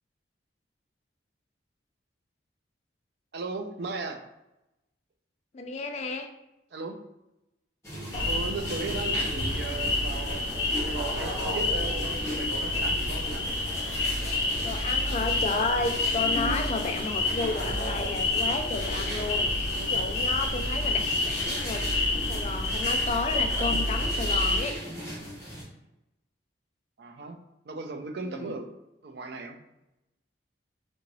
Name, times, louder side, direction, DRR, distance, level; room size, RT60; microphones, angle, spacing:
voice 1, 3.3-4.2 6.7-7.0 8.2-13.4 27.0-27.4 27.6-28.8 29.0-29.6, right 3 dB, 60° right, 5 dB, 0.4 m, -37 dB
voice 2, 5.5-6.3 14.6-24.8 28.2-28.5, left 3 dB, 35° left, 4 dB, 0.3 m, -32 dB
sound 1, 7.8-25.6, equal, 15° left, 1.2 m, -37 dB
sound 2, 8.1-24.6, left 2 dB, 85° left, 0.7 m, -29 dB
sound 3, 9.8-10.6 10.9-11.0 11.3-11.5 11.8-11.9 12.1-12.4 13.0-14.0 14.7-14.8 15.1-15.2 15.5-16.6 17.5-18.5, left 1 dB, 5° right, 0.6 m, -41 dB
2.7 x 2.6 x 3.0 m, 0.92 s
head